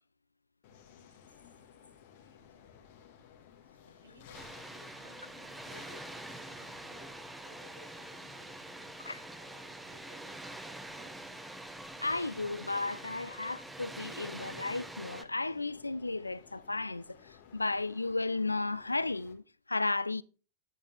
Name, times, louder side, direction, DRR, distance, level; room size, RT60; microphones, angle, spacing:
sound 1, 0.6-19.3, left 8 dB, 50° left, 1.5 m, -57 dB
voice 1, 4.0-7.1 7.4-8.9 9.3-11.6, right 1 dB, 80° right, 2.6 m, -59 dB
Water, 4.3-15.2, right 2 dB, 5° right, 0.8 m, -46 dB
voice 2, 12.0-17.2 17.5-19.4 19.7-20.2, left 3 dB, 80° left, 0.4 m, -34 dB
9.6 x 8.8 x 3.3 m
figure-of-eight pair, 90°, 0 cm